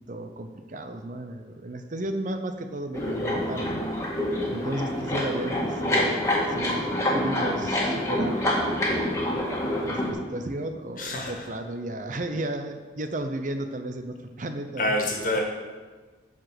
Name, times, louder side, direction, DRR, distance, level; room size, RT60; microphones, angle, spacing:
voice 1, 0.1-3.8 4.5-8.4 9.8-15.0, right 1 dB, 40° right, 7 dB, 0.6 m, -34 dB
sound 1, 2.9-10.1, left 1 dB, 15° left, 1.8 m, -26 dB
voice 2, 11.0-11.5 14.8-15.4, left 1 dB, 45° left, 0 dB, 1.9 m, -27 dB
11.5 x 4.9 x 7.7 m, 1.4 s
head